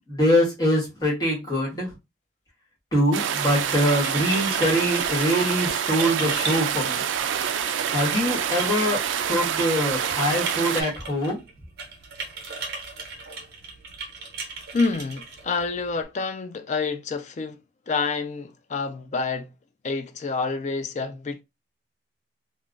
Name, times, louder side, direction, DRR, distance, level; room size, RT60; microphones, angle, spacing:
voice 1, 0.1-2.0 2.9-7.0 7.9-9.0 9.3-11.4, equal, 20° left, 1.1 m, -23 dB
sound 1, 3.1-10.8, right 8 dB, 70° right, 0.3 m, -27 dB
sound 2, 3.4-16.0, right 3 dB, 50° right, 0.9 m, -37 dB
voice 2, 14.7-17.6 17.9-19.5 19.8-21.4, left 4 dB, 35° left, 0.3 m, -28 dB
2.3 x 2.1 x 3.7 m
head